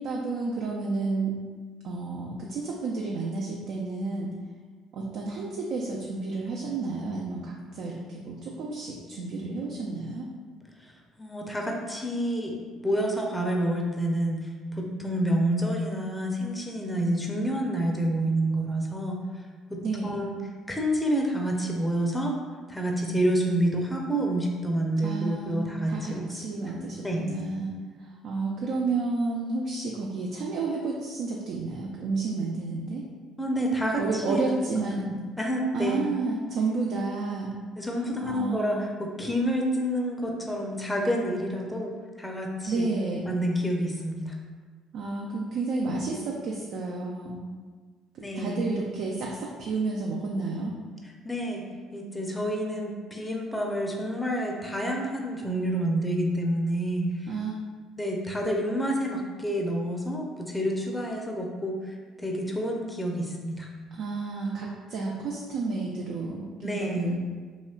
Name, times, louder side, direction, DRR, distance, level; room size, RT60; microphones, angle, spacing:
voice 1, 0.0-1.4 1.8-4.3 4.9-10.3 19.8-20.2 25.0-27.7 28.0-33.0 34.0-35.1 35.7-37.6 38.2-38.8 42.7-43.3 44.9-47.4 48.1-50.7 57.3-57.5 63.9-67.2, right 3 dB, 60° right, -2 dB, 0.3 m, -31 dB
voice 2, 11.2-12.5 12.8-19.2 19.7-20.4 20.7-22.3 22.7-26.2 27.0-27.2 33.4-34.4 34.7-36.0 37.8-42.9 43.3-44.3 48.2-48.6 51.2-51.6 51.9-57.3 58.0-63.7 66.6-67.1, right 1 dB, 10° left, 0 dB, 0.5 m, -28 dB
3.0 x 2.8 x 2.3 m, 1.5 s
figure-of-eight pair, 50°, 0 cm